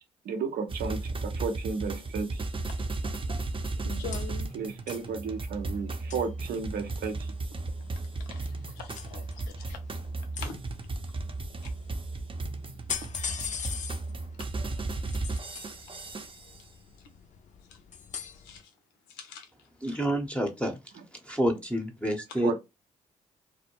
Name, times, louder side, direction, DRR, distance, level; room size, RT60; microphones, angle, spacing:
voice 1, 0.2-2.5 4.5-7.3 22.4-22.6, right 5 dB, 70° right, 0.6 m, -33 dB
sound 1, 0.7-16.6, right 2 dB, 30° right, 0.6 m, -35 dB
sound 2, 1.7-18.6, left 7 dB, 50° left, 0.4 m, -44 dB
voice 2, 3.0-3.4 3.8-4.5 8.3-9.8 10.4-10.6 11.6-11.7 18.4-18.6 19.2-19.5, left 6 dB, 90° left, 0.6 m, -43 dB
voice 3, 19.8-20.8 21.1-22.6, equal, 5° left, 0.7 m, -29 dB
2.2 x 2.1 x 2.9 m
supercardioid pair, 50°, 16 cm